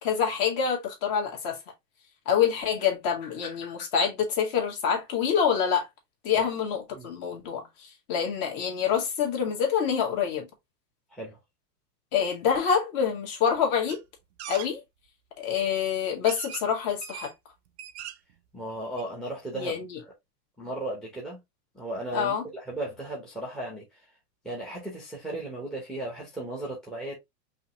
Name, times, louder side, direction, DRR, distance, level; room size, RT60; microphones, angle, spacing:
voice 1, 0.0-1.6 2.3-5.9 6.2-10.5 12.1-14.0 14.5-14.8 15.4-17.3 19.5-20.0 22.1-22.4, left 7 dB, 35° left, 1.8 m, -26 dB
sound 1, 13.9-14.0 14.4-14.7 15.6-15.7 16.2-16.7 17.0-17.3 17.7-18.3 18.7-18.8 19.0-19.1, right 11 dB, 45° right, 0.5 m, -40 dB
voice 2, 18.5-19.7 20.6-21.4 21.7-22.4 22.7-24.0 24.4-27.1, right 2 dB, ahead, 0.9 m, -35 dB
5.5 x 2.9 x 2.9 m
supercardioid pair, 160°, 49 cm